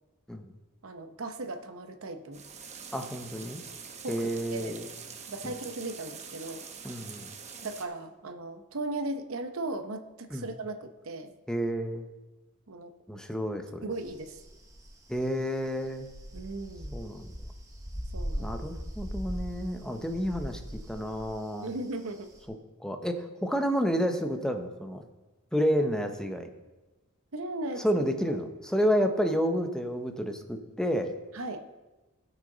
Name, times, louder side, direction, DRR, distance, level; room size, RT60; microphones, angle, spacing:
voice 1, 0.8-2.4 4.0-4.8 5.3-6.6 7.6-11.3 12.7-12.9 13.8-14.4 16.3-17.0 18.1-18.6 21.6-22.3 27.3-28.0 31.3-31.7, right 2 dB, 70° right, 7 dB, 0.9 m, -37 dB
sound 1, 2.3-7.8, right 6 dB, 30° right, 0.9 m, -45 dB
voice 2, 2.9-3.6 4.1-4.9 5.4-5.5 6.8-7.3 10.3-10.4 11.5-12.0 13.1-13.9 15.1-16.1 16.9-17.3 18.4-21.7 22.8-25.0 25.5-26.5 27.8-31.1, equal, 5° left, 5 dB, 0.7 m, -30 dB
sound 2, 14.0-22.5, equal, 15° right, 1.1 m, -40 dB
16.0 x 6.4 x 3.9 m, 1.1 s
head